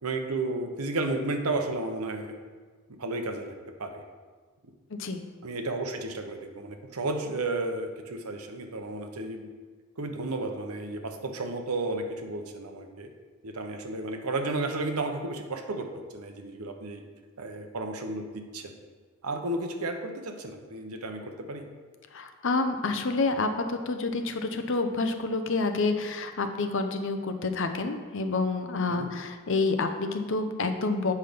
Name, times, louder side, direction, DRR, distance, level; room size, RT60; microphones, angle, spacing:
voice 1, 0.0-2.4 3.0-4.0 5.4-9.5 10.0-13.1 13.4-15.9 16.1-17.0 17.4-18.7 19.2-21.6 28.9-29.1, right 2 dB, 85° right, 5 dB, 0.9 m, -33 dB
voice 2, 4.9-5.2 22.1-31.1, left 3 dB, 60° left, 7 dB, 0.7 m, -28 dB
8.2 x 5.7 x 5.2 m, 1.5 s
head